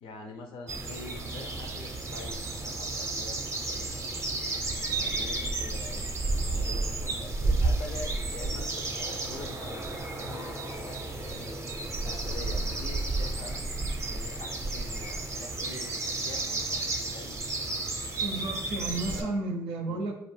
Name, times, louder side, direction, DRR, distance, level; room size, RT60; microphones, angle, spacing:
voice 1, 0.0-3.4 3.7-4.1 4.8-6.1 6.5-9.9 10.2-11.5 12.0-13.6 14.1-17.3 19.1-19.4 19.9-20.0, left 3 dB, 70° left, 3 dB, 0.5 m, -45 dB
sound 1, 0.7-19.2, right 2 dB, 30° right, 0.5 m, -32 dB
voice 2, 18.2-20.1, right 2 dB, 80° right, 3 dB, 0.4 m, -32 dB
2.4 x 2.0 x 3.2 m, 0.81 s
hypercardioid pair, 50°, 9 cm